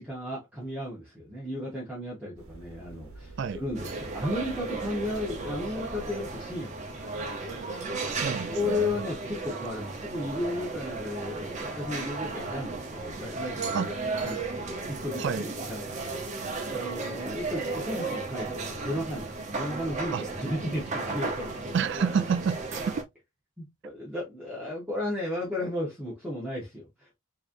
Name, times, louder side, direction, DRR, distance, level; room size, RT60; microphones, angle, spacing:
voice 1, 0.0-7.9 8.5-13.9 14.2-21.6 23.6-27.1, left 1 dB, 5° right, 1.1 m, -34 dB
sound 1, 2.4-6.8, right 1 dB, 75° right, 1.0 m, -47 dB
sound 2, 3.7-23.0, right 3 dB, 30° right, 0.8 m, -35 dB
voice 2, 7.9-9.0 13.7-13.9 15.2-15.5 20.1-20.2 21.7-22.9, right 6 dB, 50° right, 0.3 m, -29 dB
3.8 x 3.1 x 2.6 m
head